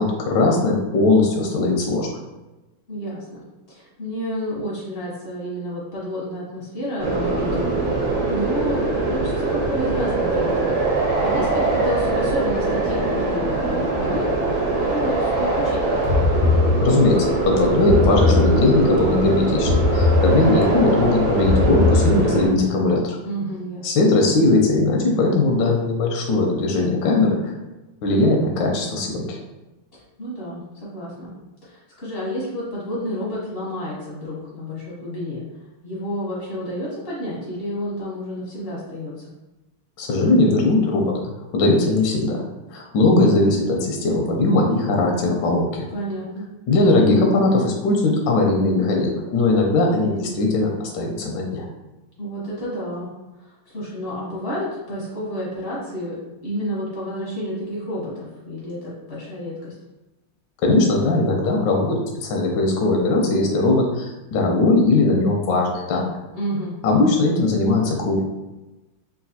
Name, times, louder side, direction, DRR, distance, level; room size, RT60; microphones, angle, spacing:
voice 1, 0.0-2.1 16.8-23.2 23.8-27.5 28.0-29.4 40.0-41.1 41.5-42.4 42.7-45.9 46.7-51.7 60.6-66.1 66.8-68.2, left 2 dB, 75° left, 0 dB, 1.1 m, -19 dB
voice 2, 2.9-8.0 8.3-10.8 11.2-14.3 14.8-16.0 23.2-23.9 30.2-31.3 31.6-35.4 35.8-39.3 45.9-46.4 52.2-53.1 53.4-56.2 56.4-59.7 66.3-66.8, equal, 55° left, -7 dB, 0.6 m, -30 dB
sound 1, 7.0-22.5, right 2 dB, 85° right, 1.7 m, -22 dB
sound 2, 16.0-17.2 17.8-19.0 19.6-20.8 21.4-22.6, left 3 dB, 60° right, 1.0 m, -20 dB
3.9 x 2.2 x 2.7 m, 1.1 s
omnidirectional pair, 2.4 m